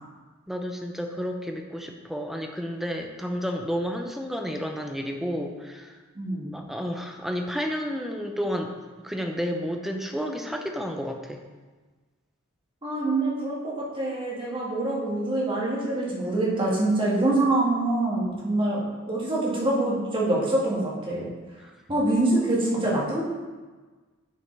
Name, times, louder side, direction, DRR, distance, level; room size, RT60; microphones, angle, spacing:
voice 1, 0.5-5.9 6.5-8.7 9.0-11.4, equal, ahead, 3 dB, 0.6 m, -31 dB
voice 2, 6.2-6.6 12.8-21.3 21.9-23.2, right 2 dB, 25° right, -5 dB, 1.8 m, -25 dB
9.9 x 5.3 x 3.3 m, 1.3 s
head